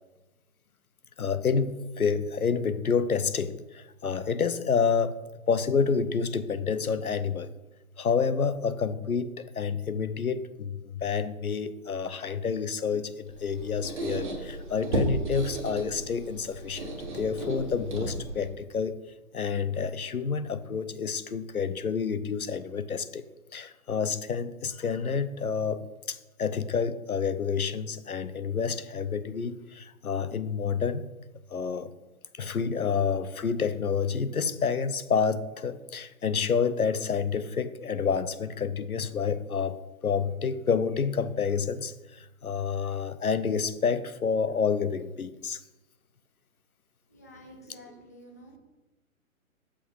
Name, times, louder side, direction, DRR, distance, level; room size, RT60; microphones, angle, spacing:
voice 1, 1.2-5.2 5.5-7.5 8.0-19.0 19.3-23.2 23.5-31.1 31.5-31.9 32.3-45.6, left 6 dB, 80° left, 13 dB, 0.7 m, -29 dB
Squeak, 13.2-18.5, right 2 dB, 35° right, 1.6 m, -34 dB
voice 2, 47.1-48.6, equal, 10° left, 0 dB, 0.5 m, -50 dB
6.3 x 5.5 x 5.6 m, 1.1 s
figure-of-eight pair, 130°, 43 cm